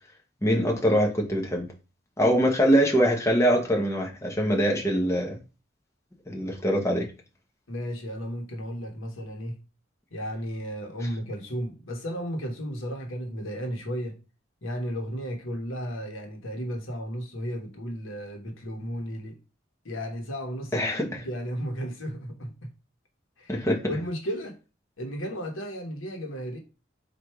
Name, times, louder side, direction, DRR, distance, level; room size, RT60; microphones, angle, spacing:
voice 1, 0.4-1.7 2.2-5.4 6.3-7.1 20.7-21.2 23.5-23.8, equal, 15° left, 0.9 m, -23 dB
voice 2, 7.7-9.6 10.1-14.2 14.6-19.4 19.8-22.7 23.4-24.6 25.0-26.6, equal, 80° left, 1.1 m, -34 dB
4.3 x 2.5 x 4.6 m
head